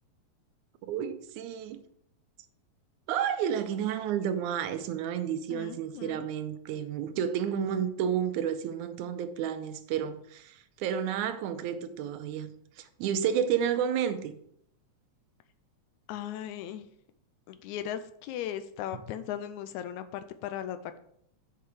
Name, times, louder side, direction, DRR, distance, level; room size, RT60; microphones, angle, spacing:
voice 1, 0.9-1.8 3.1-12.5 12.8-14.4 18.9-19.0, right 8 dB, 90° right, 2.1 m, -31 dB
voice 2, 5.5-6.3 16.1-16.9 17.5-21.0, left 10 dB, 85° left, 2.0 m, -37 dB
6.7 x 5.8 x 4.8 m
omnidirectional pair, 3.3 m